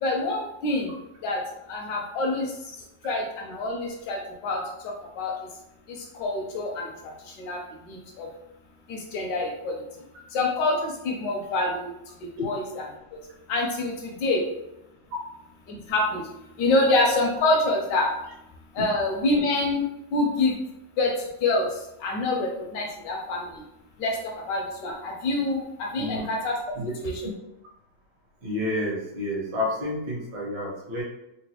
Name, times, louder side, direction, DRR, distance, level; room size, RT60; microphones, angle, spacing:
voice 1, 0.0-1.4 1.7-2.5 3.0-5.3 5.9-7.6 7.9-8.3 8.9-9.8 10.3-12.8 13.1-13.2 13.5-14.4 15.7-16.3 16.6-18.1 18.7-19.8 20.1-20.6 21.0-23.6 24.0-26.6 27.0-27.3, left 2 dB, 75° left, 1 dB, 1.0 m, -26 dB
voice 2, 26.0-26.3 26.7-26.9 28.4-31.0, left 1 dB, 65° right, -3 dB, 1.4 m, -29 dB
3.9 x 2.1 x 2.8 m, 0.88 s
omnidirectional pair, 2.3 m